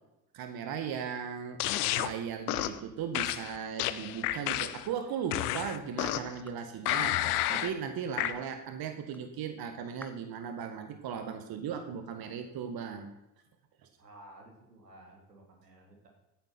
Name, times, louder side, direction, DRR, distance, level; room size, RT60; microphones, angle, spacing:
voice 1, 0.3-1.6 2.0-7.2 7.5-13.1, right 7 dB, 50° right, 8 dB, 1.8 m, -37 dB
sound 1, 1.6-2.1 2.5-2.8 3.1-4.9 5.3-6.4 6.9-7.7 8.2-8.3, left 14 dB, 70° left, 1.0 m, -30 dB
sound 2, 5.6-5.8 6.5-6.7 7.4-7.5 8.2-8.5 9.1-9.2 10.0-10.2, left 1 dB, 5° left, 1.3 m, -46 dB
voice 2, 13.9-16.1, right 1 dB, 90° right, 1 dB, 3.0 m, -54 dB
15.5 x 9.3 x 5.9 m, 0.92 s
hypercardioid pair, 60°, 46 cm